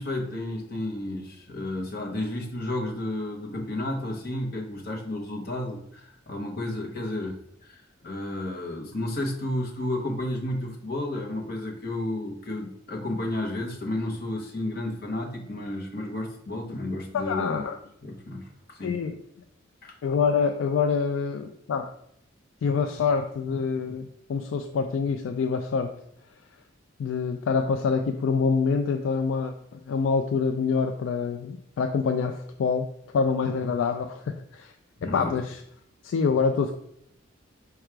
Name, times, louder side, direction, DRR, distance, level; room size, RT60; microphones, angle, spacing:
voice 1, 0.0-17.7 18.0-19.0 19.8-19.9 35.0-35.4, left 1 dB, 50° left, 1 dB, 0.9 m, -32 dB
voice 2, 17.1-17.8 18.8-19.2 20.0-21.9 22.6-25.9 27.0-34.7 35.0-35.6 36.0-36.7, left 5 dB, 75° left, 6 dB, 0.3 m, -26 dB
4.8 x 2.3 x 4.5 m, 0.74 s
head